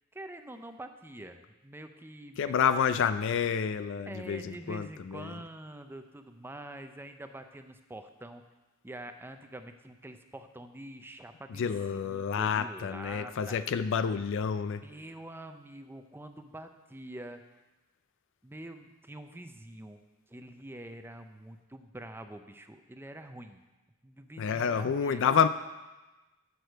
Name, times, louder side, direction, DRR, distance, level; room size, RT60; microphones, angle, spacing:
voice 1, 0.1-2.9 4.1-8.4 8.8-13.6 14.8-17.4 18.4-20.0 20.3-23.6 24.0-25.5, right 1 dB, 10° right, 7 dB, 0.5 m, -46 dB
voice 2, 2.4-5.3 11.6-14.8 24.4-25.5, left 7 dB, 60° left, 12 dB, 0.4 m, -29 dB
7.9 x 6.8 x 6.5 m, 1.1 s
head